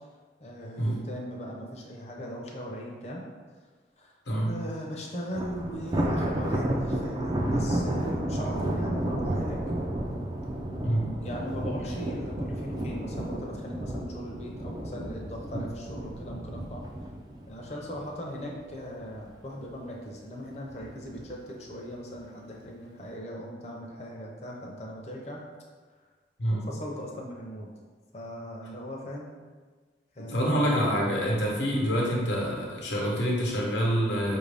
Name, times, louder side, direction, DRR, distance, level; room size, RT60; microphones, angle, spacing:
voice 1, 0.4-3.2 4.0-4.1 4.4-9.6 11.2-16.8 17.5-25.4 26.5-27.7 28.1-29.3 30.2-30.5, equal, 35° left, -2 dB, 0.6 m, -39 dB
Thunder, 5.3-18.6 19.0-19.3 19.7-19.8 20.7-21.2, right 1 dB, 20° right, 0.3 m, -31 dB
voice 2, 30.2-34.4, equal, 80° left, -3 dB, 0.9 m, -26 dB
5.4 x 2.6 x 3.3 m, 1.4 s
head